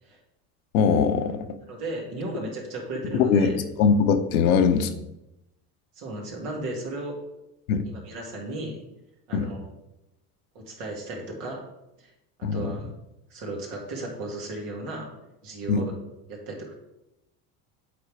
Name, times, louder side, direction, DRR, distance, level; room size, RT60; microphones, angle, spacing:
voice 1, 0.7-1.4 3.1-4.9 7.7-7.8 9.3-9.5 12.4-12.7 15.7-15.8, left 6 dB, 85° left, 7 dB, 0.9 m, -21 dB
voice 2, 1.7-3.5 4.4-4.6 6.0-7.1 7.8-8.8 9.3-9.6 10.5-11.7 12.0-12.1 12.4-12.9 13.3-15.2 15.4-15.9 16.3-16.7, right 2 dB, 80° right, -1 dB, 2.3 m, -35 dB
8.4 x 3.9 x 4.9 m, 0.91 s
hypercardioid pair, 85°, 42 cm